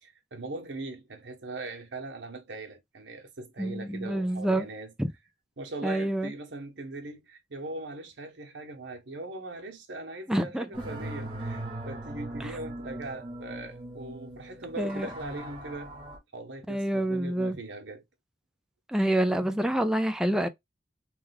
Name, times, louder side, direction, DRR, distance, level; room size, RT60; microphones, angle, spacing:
voice 1, 0.0-4.9 5.6-15.9 16.3-18.0, right 2 dB, 85° right, 1.0 m, -40 dB
voice 2, 3.6-4.7 5.0-5.1 5.8-6.3 10.3-10.8 14.8-15.1 16.7-17.6 18.9-20.5, right 1 dB, 5° right, 0.4 m, -27 dB
sound 1, 10.7-16.2, right 1 dB, 30° right, 1.2 m, -39 dB
3.3 x 2.3 x 3.4 m
head